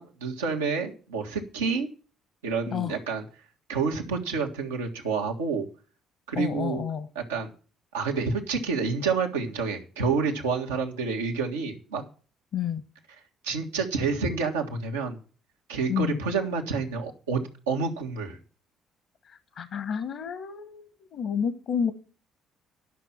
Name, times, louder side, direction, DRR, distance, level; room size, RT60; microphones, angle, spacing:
voice 1, 0.0-1.9 2.4-3.2 3.7-5.7 6.3-6.8 7.1-7.5 7.9-12.0 13.4-15.2 15.7-18.4, right 5 dB, 85° right, 1 dB, 1.6 m, -28 dB
voice 2, 6.3-7.1 12.5-12.8 15.9-16.2 19.2-20.9 21.1-21.9, left 8 dB, 60° left, 12 dB, 1.2 m, -30 dB
11.0 x 6.0 x 8.7 m, 0.38 s
hypercardioid pair, 50°, 0 cm